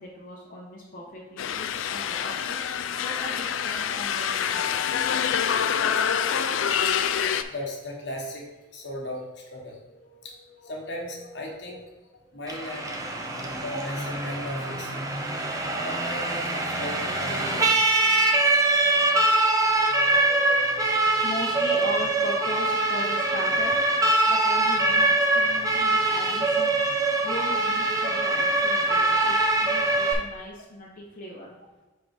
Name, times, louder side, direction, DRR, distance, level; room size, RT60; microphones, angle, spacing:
voice 1, 0.0-4.7 9.9-11.5 12.2-12.7 13.3-13.8 19.0-19.2 21.2-26.7 27.2-31.6, left 1 dB, 45° left, -5 dB, 0.9 m, -39 dB
sound 1, 1.4-7.4, left 8 dB, 90° left, 0.4 m, -26 dB
voice 2, 7.3-9.8 10.2-10.3 10.6-11.8 12.3-12.9 13.2-15.1 15.8-17.8 19.9-21.0 21.7-21.8, left 1 dB, 65° left, -1 dB, 1.3 m, -37 dB
Siren, 12.5-30.1, right 2 dB, 15° right, 0.6 m, -23 dB
5.5 x 3.8 x 4.8 m, 1.2 s
head